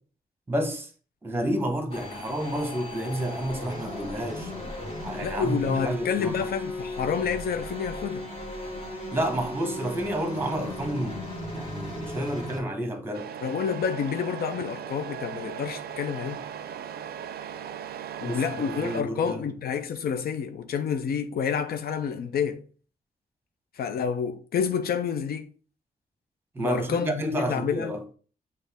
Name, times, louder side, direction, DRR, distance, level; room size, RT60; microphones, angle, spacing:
voice 1, 0.5-0.9 1.2-4.5 5.0-6.5 9.1-11.2 11.5-13.3 18.2-19.4 26.5-28.0, right 1 dB, 15° right, 0.9 m, -30 dB
sound 1, 1.9-12.6, left 1 dB, 40° left, 1.3 m, -36 dB
voice 2, 5.2-8.3 13.4-16.4 18.2-22.6 23.8-25.5 26.6-27.9, left 7 dB, 85° left, 0.5 m, -29 dB
Truck, 13.1-19.0, right 8 dB, 90° right, 0.4 m, -38 dB
6.4 x 2.4 x 3.4 m
wide cardioid pair, 135°, 16 cm